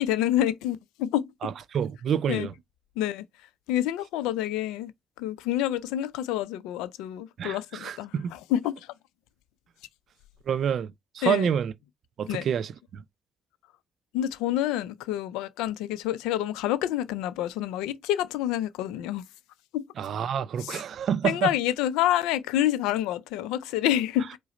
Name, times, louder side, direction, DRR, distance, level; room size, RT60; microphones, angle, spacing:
voice 1, 0.0-1.3 2.3-2.5 3.0-3.2 3.7-4.9 5.2-8.9 11.2-11.5 12.3-12.5 14.1-19.2 19.7-19.8 20.6-20.8 21.2-24.4, left 12 dB, 80° left, 0.4 m, -28 dB
voice 2, 1.4-2.5 7.4-8.3 10.5-10.9 11.1-11.7 12.2-13.0 20.0-21.5, right 8 dB, 60° right, 0.4 m, -28 dB
4.8 x 2.0 x 3.8 m
hypercardioid pair, 55°, 0 cm